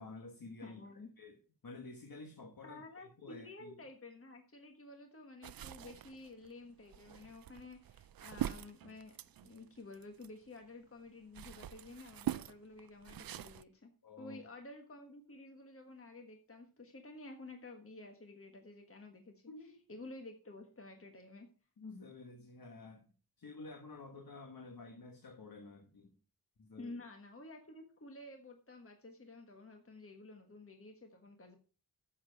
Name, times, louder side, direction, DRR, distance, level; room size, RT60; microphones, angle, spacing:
voice 1, 0.0-0.8 1.2-1.4 1.6-3.7 14.0-14.4 19.5-19.8 21.8-23.1 23.4-26.1 26.6-27.0, left 3 dB, 70° left, 1.4 m, -51 dB
voice 2, 0.6-1.1 2.6-9.1 9.4-13.9 14.2-19.3 19.9-21.5 26.8-31.6, left 2 dB, 40° left, 1.4 m, -52 dB
sound 1, 5.4-10.6 11.1-13.6, right 11 dB, 75° right, 0.5 m, -44 dB
10.0 x 7.4 x 4.6 m
wide cardioid pair, 85°, 35 cm